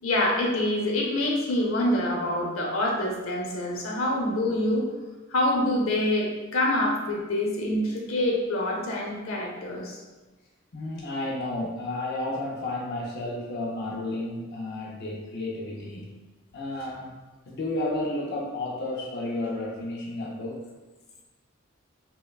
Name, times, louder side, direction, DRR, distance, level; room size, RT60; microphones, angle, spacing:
voice 1, 0.0-4.8 5.3-10.0, left 1 dB, 85° left, -1 dB, 0.7 m, -26 dB
voice 2, 10.7-16.1 16.5-17.1 17.5-20.7, left 2 dB, 55° left, -4 dB, 0.5 m, -32 dB
5.5 x 2.2 x 2.3 m, 1.2 s
head